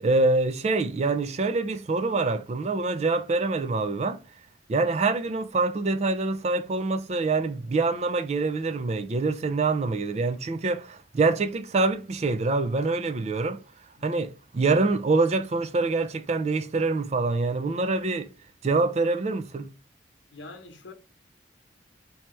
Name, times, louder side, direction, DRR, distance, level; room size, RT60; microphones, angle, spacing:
voice 1, 0.0-4.2 4.7-13.6 14.0-18.3 18.6-19.7, right 3 dB, 35° right, 0.4 m, -25 dB
voice 2, 14.0-14.3 20.3-20.9, left 2 dB, 80° left, 0.9 m, -45 dB
3.3 x 2.8 x 3.1 m
head